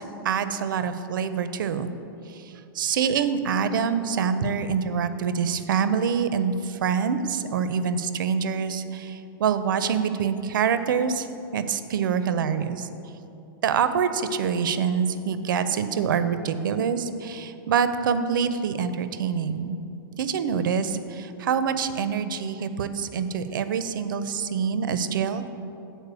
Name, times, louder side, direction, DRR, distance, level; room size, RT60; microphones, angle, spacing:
voice 1, 0.0-1.9 2.8-6.5 6.8-8.8 9.4-11.2 11.5-12.8 13.6-19.8 20.2-25.5, right 7 dB, 60° right, 11 dB, 0.5 m, -25 dB
8.2 x 4.4 x 6.8 m, 2.8 s
supercardioid pair, 180°, 12 cm